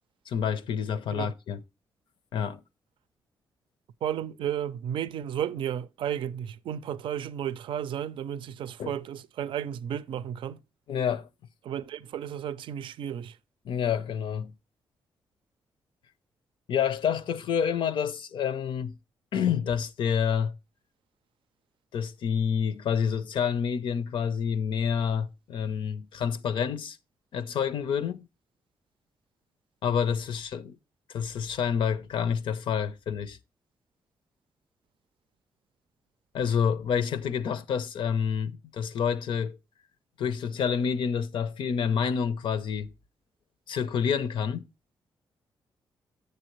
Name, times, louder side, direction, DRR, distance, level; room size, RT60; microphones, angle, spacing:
voice 1, 0.3-1.6 2.3-2.6 8.8-8.9 10.9-11.3 13.6-14.5 16.7-19.0 19.3-20.5 21.9-27.0 27.3-28.3 29.8-30.8 31.1-33.4 36.3-39.6 40.2-42.9 43.7-44.7, left 7 dB, 75° left, 0.6 m, -28 dB
voice 2, 4.0-10.6 11.6-13.4, right 9 dB, 75° right, 0.4 m, -33 dB
7.8 x 6.8 x 3.0 m
cardioid pair, 70°, 9 cm